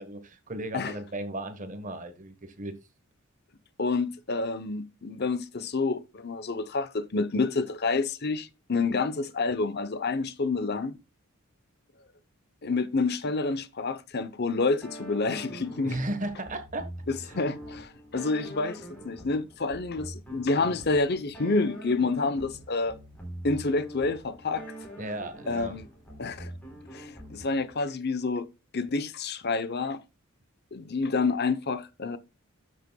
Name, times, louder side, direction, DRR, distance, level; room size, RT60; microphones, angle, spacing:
voice 1, 0.0-2.7 15.8-16.9 17.2-17.3 25.0-25.7, right 1 dB, 35° right, 1.2 m, -35 dB
voice 2, 3.8-11.0 12.6-16.0 17.1-23.0 23.4-24.6 25.5-25.9 26.2-26.5 26.9-28.5 28.7-30.0 30.7-32.2, left 3 dB, 50° left, 0.8 m, -28 dB
sound 1, 14.8-27.7, right 1 dB, 5° left, 3.8 m, -44 dB
13.0 x 6.5 x 2.3 m
head